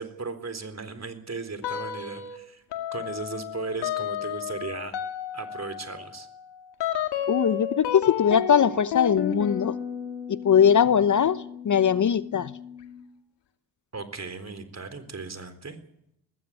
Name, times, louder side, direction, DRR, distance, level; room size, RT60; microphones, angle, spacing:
voice 1, 0.0-2.6 2.9-5.0 5.3-6.3 13.9-15.8, right 4 dB, 35° right, 9 dB, 4.0 m, -36 dB
sound 1, 1.6-2.4 2.7-13.0, left 9 dB, 70° left, 2.2 m, -33 dB
voice 2, 7.3-9.8 10.3-12.5, left 8 dB, 45° left, 16 dB, 0.9 m, -21 dB
20.0 x 16.0 x 9.9 m, 0.77 s
hypercardioid pair, 40°, 43 cm